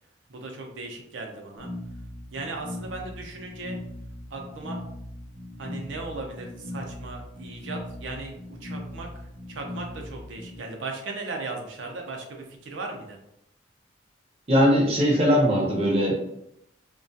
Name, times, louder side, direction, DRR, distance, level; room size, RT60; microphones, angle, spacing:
voice 1, 0.3-1.7 2.3-3.8 4.3-4.8 5.6-8.3 8.6-13.2, right 3 dB, 80° right, 2 dB, 0.5 m, -37 dB
sound 1, 1.6-10.6, left 1 dB, 5° left, 0.7 m, -39 dB
voice 2, 14.5-16.3, equal, 30° right, -1 dB, 0.6 m, -20 dB
2.3 x 2.2 x 2.6 m, 0.78 s
head